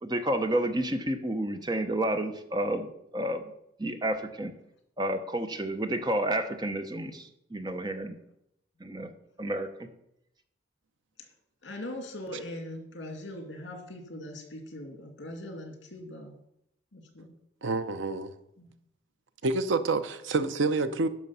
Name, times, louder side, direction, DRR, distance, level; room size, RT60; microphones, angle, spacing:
voice 1, 0.0-2.9 3.1-3.4 3.8-4.5 5.0-8.1 8.8-9.1 9.4-9.7, right 1 dB, 20° right, 0.7 m, -30 dB
voice 2, 11.6-16.3 16.9-17.3 18.6-18.7, left 1 dB, 65° left, 2.2 m, -41 dB
voice 3, 17.6-18.3 19.4-21.1, right 3 dB, 75° right, 0.7 m, -28 dB
10.5 x 6.3 x 5.6 m
head